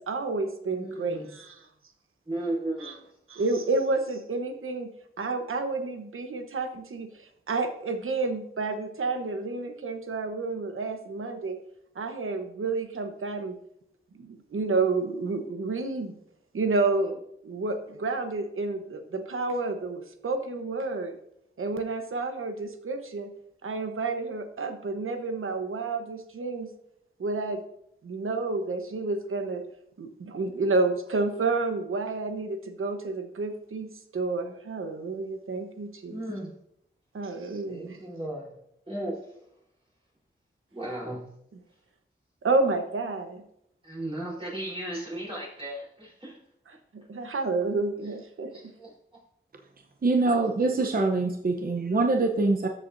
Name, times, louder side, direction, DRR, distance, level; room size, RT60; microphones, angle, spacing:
voice 1, 0.0-1.7 2.8-2.9 3.3-4.9 5.2-11.6 11.9-13.6 14.2-16.2 16.5-21.1 21.6-23.3 23.6-26.7 27.2-27.6 28.0-29.6 30.0-36.2 37.1-38.0 42.4-43.4 46.9-48.5, right 3 dB, 85° right, 6 dB, 1.1 m, -30 dB
voice 2, 0.7-1.3 2.3-3.0 36.1-36.5 37.7-38.5 38.9-39.2 40.7-41.2 43.8-46.4 48.5-48.9, right 1 dB, 25° right, -5 dB, 4.0 m, -35 dB
voice 3, 50.0-52.7, right 3 dB, 45° right, 3 dB, 0.8 m, -24 dB
13.5 x 7.5 x 2.7 m, 0.75 s
wide cardioid pair, 95°, 21 cm